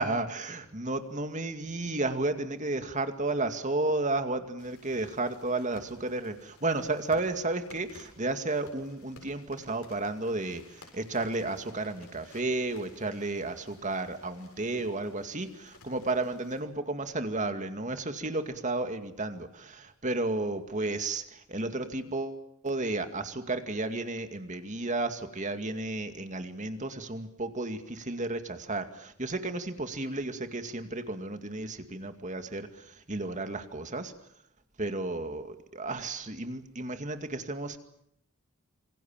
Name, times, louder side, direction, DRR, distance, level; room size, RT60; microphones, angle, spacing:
voice 1, 0.0-34.1 34.8-37.8, right 2 dB, 35° right, 8 dB, 2.2 m, -33 dB
sound 1, 4.6-16.6, left 3 dB, 70° left, 7.4 m, -56 dB
27.0 x 25.5 x 7.4 m, 0.71 s
head